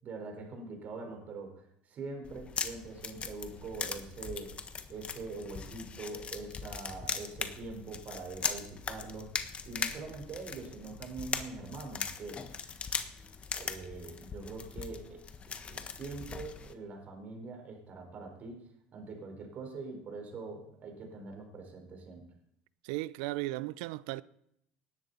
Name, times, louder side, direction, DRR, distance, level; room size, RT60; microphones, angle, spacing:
voice 1, 0.0-4.6 4.9-9.3 9.6-12.5 13.6-15.2 15.6-22.2, right 3 dB, 45° right, 4.5 m, -43 dB
sound 1, 2.2-16.7, left 6 dB, 35° left, 1.3 m, -40 dB
voice 2, 22.8-24.2, right 19 dB, 80° right, 0.5 m, -36 dB
19.0 x 10.5 x 4.2 m
supercardioid pair, 90°, 4 cm